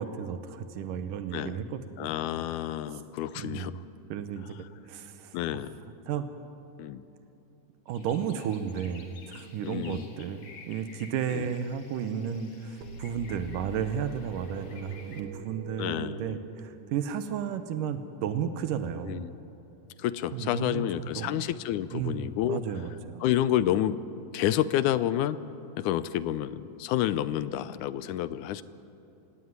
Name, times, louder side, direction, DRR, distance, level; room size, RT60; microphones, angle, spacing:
voice 1, 0.0-2.1 3.4-4.6 4.9-5.4 6.1-6.3 7.9-19.2 20.3-21.4 21.9-23.3, right 8 dB, 85° right, 9 dB, 2.6 m, -33 dB
voice 2, 2.0-3.8 5.3-5.8 6.8-7.0 9.6-10.1 11.3-11.5 15.8-16.4 19.0-19.3 20.0-22.6 23.2-24.0 24.3-25.4 25.8-28.6, left 12 dB, 80° left, 15 dB, 2.1 m, -29 dB
sound 1, 7.9-15.2, left 5 dB, 55° left, 2.9 m, -52 dB
sound 2, 12.8-17.5, right 4 dB, 70° right, 2.4 m, -45 dB
25.0 x 17.0 x 9.6 m, 2.9 s
omnidirectional pair, 3.7 m